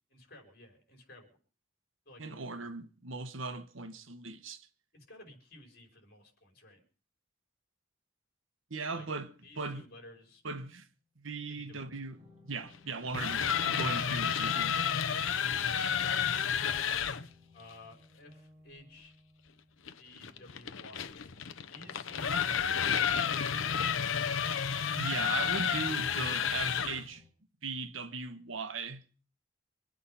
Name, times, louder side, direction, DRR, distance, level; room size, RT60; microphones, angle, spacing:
voice 1, 0.1-1.4 2.1-2.2 4.9-6.8 8.9-9.1 9.4-10.4 11.5-11.9 16.0-16.2 17.5-19.1 20.0-21.2 21.7-22.7, left 1 dB, 55° left, 5.3 m, -54 dB
voice 2, 2.2-4.7 8.7-9.3 9.6-9.8 10.4-10.9 11.2-12.2 12.4-15.0 25.0-27.2 27.6-29.0, right 4 dB, 85° right, 1.3 m, -38 dB
sound 1, 10.3-10.4 11.7-15.7 16.6-25.4 26.2-27.3, left 2 dB, 20° right, 5.4 m, -62 dB
sound 2, 12.9-17.3 19.9-27.1, left 7 dB, 85° left, 0.8 m, -31 dB
25.0 x 8.6 x 5.6 m
head